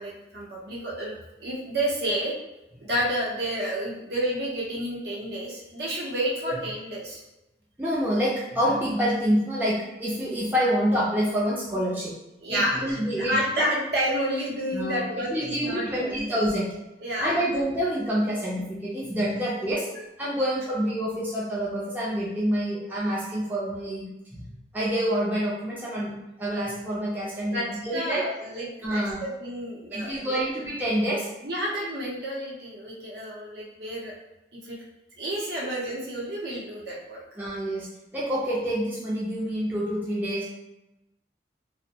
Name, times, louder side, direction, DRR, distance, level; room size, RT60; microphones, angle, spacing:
voice 1, 0.0-2.3 2.8-7.2 12.4-16.1 17.0-17.4 19.9-20.0 27.5-30.4 31.4-34.1 34.6-34.8 35.2-37.2, equal, 60° right, -3 dB, 0.7 m, -30 dB
voice 2, 7.8-12.1 12.5-13.4 14.7-16.7 17.2-19.9 20.2-28.4 28.8-29.2 29.9-31.3 37.4-40.4, equal, 10° right, -7 dB, 0.4 m, -27 dB
2.6 x 2.0 x 2.7 m, 0.94 s
head